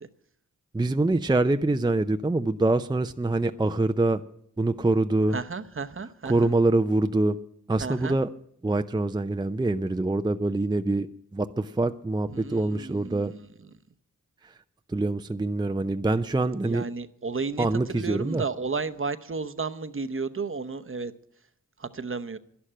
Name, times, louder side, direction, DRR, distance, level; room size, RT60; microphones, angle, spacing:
voice 1, 0.7-4.2 4.6-5.4 6.3-7.4 7.7-8.3 8.6-13.3 14.4-14.5 14.9-16.9 17.6-18.4, right 2 dB, 15° right, 9 dB, 0.6 m, -25 dB
voice 2, 5.3-6.5 7.8-8.2 12.3-13.5 16.6-21.1 21.8-22.4, right 4 dB, 40° right, 11 dB, 0.9 m, -33 dB
11.5 x 11.5 x 7.6 m, 0.69 s
cardioid pair, 55°, 33 cm